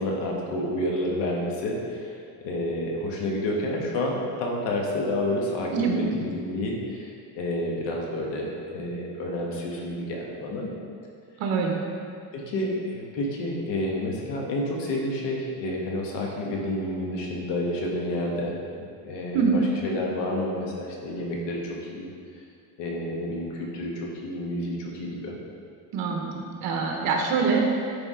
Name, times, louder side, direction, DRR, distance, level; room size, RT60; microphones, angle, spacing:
voice 1, 0.0-10.7 12.3-18.6 19.0-22.1 22.8-25.3, left 1 dB, 90° left, -2 dB, 1.4 m, -29 dB
voice 2, 5.7-6.0 11.4-11.8 19.3-19.6 25.9-27.6, right 5 dB, 65° right, 0 dB, 1.0 m, -24 dB
9.6 x 3.5 x 3.7 m, 2.3 s
cardioid pair, 145°, 41 cm